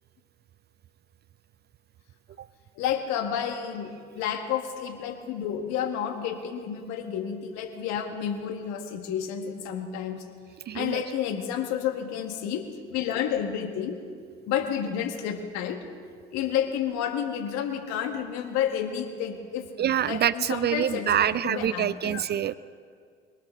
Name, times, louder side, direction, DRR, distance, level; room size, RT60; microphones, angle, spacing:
voice 1, 2.8-10.2 10.7-14.0 14.5-15.8 16.3-22.2, left 9 dB, 70° left, 7 dB, 1.6 m, -30 dB
voice 2, 10.7-11.0 19.8-22.5, right 10 dB, 35° right, 18 dB, 0.4 m, -26 dB
22.5 x 12.5 x 3.7 m, 2.1 s
hypercardioid pair, 60°, 29 cm